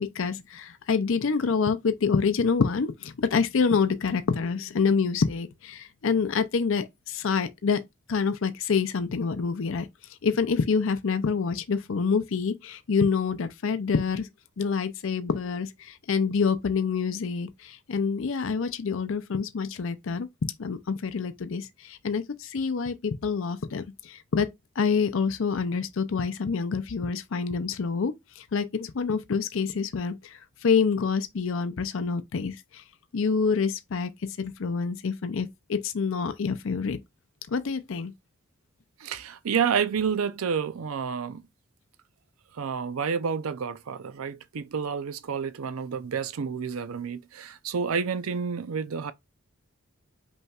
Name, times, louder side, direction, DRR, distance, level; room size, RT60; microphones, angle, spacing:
voice 1, 0.0-7.8 8.1-9.9 10.2-14.3 14.6-24.5 24.8-32.8 33.1-34.1 34.4-37.0 37.5-38.1, left 5 dB, 65° left, 0.5 m, -27 dB
voice 2, 39.0-41.4 42.5-49.1, right 6 dB, 80° right, 0.5 m, -29 dB
5.4 x 3.1 x 2.4 m
head